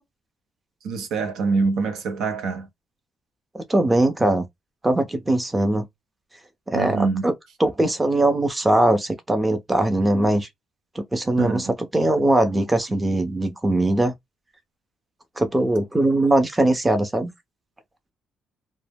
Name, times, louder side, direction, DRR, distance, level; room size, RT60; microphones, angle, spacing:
voice 1, 0.8-2.7 6.7-7.3 11.4-11.7, right 4 dB, 80° right, 0.6 m, -25 dB
voice 2, 3.5-4.4 4.8-5.9 6.7-7.3 7.6-10.5 11.0-14.1 15.4-17.3, right 1 dB, 15° right, 0.6 m, -21 dB
2.1 x 2.0 x 3.3 m
cardioid pair, 90°, 0 cm